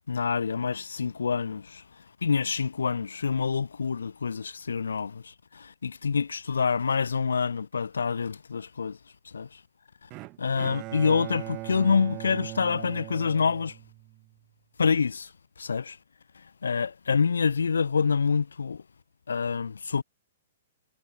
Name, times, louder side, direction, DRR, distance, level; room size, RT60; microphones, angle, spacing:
voice 1, 0.1-1.8 2.2-9.0 9.2-9.6 10.4-13.8 14.8-15.3 15.6-16.0 16.6-18.8 19.3-20.0, left 5 dB, 75° left, 2.7 m, -27 dB
Bowed string instrument, 10.1-14.3, right 22 dB, 35° right, 3.2 m, -39 dB
figure-of-eight pair, 115°, 0 cm